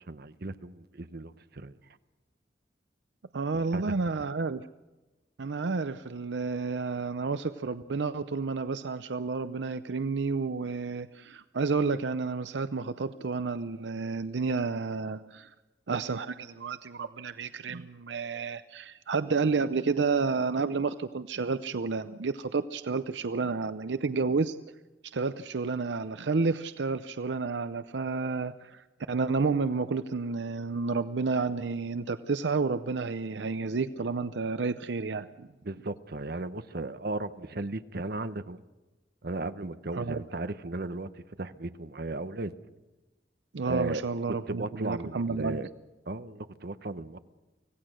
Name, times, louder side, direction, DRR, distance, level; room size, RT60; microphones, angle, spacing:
voice 1, 0.0-1.8 3.5-3.8 35.6-38.6 39.2-42.5 43.6-44.0 44.3-45.7 46.1-47.2, right 2 dB, 60° right, 11 dB, 1.0 m, -36 dB
voice 2, 3.3-4.6 5.4-15.5 15.9-24.5 25.1-35.5 39.9-40.2 43.5-45.6, right 4 dB, 85° right, 12 dB, 0.6 m, -30 dB
25.5 x 17.0 x 6.3 m, 1.1 s
head